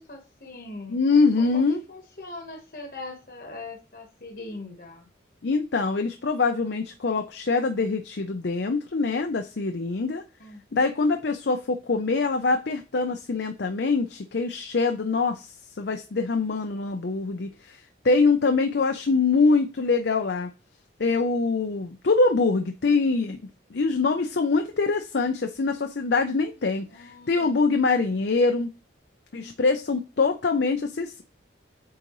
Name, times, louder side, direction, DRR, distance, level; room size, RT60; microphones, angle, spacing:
voice 1, 0.0-1.0 1.4-5.1 10.4-10.8 26.9-27.6, left 2 dB, 50° left, 2 dB, 1.2 m, -41 dB
voice 2, 0.9-1.8 5.4-10.2 10.7-15.5 15.8-20.5 21.0-23.4 23.7-28.7 29.3-31.2, left 4 dB, 65° left, 6 dB, 0.6 m, -24 dB
8.4 x 4.0 x 3.0 m, 0.32 s
head